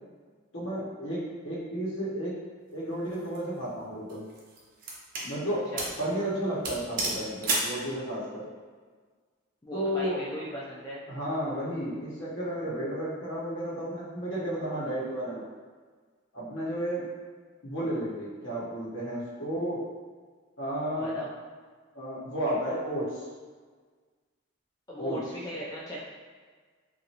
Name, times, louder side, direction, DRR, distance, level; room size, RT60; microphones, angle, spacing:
voice 1, 0.5-2.3 2.7-4.2 5.2-5.6 6.0-8.5 9.7-10.2 11.1-15.4 16.3-17.0 17.6-19.8 20.6-21.2 21.9-23.3 25.0-25.2, equal, 70° left, -8 dB, 1.1 m, -32 dB
sound 1, 3.1-3.4 4.1-5.3 5.8-6.0 6.3-6.4 6.6-7.8, right 2 dB, 45° right, 0.6 m, -31 dB
voice 2, 5.5-5.9 9.6-11.0 21.0-21.3 24.9-26.0, equal, 20° left, -7 dB, 0.4 m, -38 dB
3.0 x 2.5 x 2.8 m, 1.5 s
head